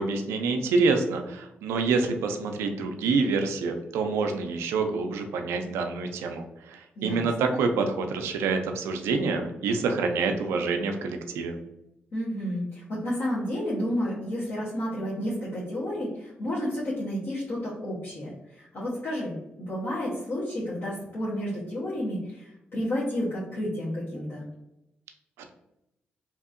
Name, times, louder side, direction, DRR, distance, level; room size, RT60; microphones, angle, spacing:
voice 1, 0.0-11.6, right 4 dB, 90° right, 5 dB, 0.4 m, -27 dB
voice 2, 7.0-7.5 12.1-19.3 19.7-24.4, equal, 65° left, -8 dB, 1.0 m, -31 dB
2.8 x 2.6 x 2.4 m, 0.88 s
supercardioid pair, 55°, 4 cm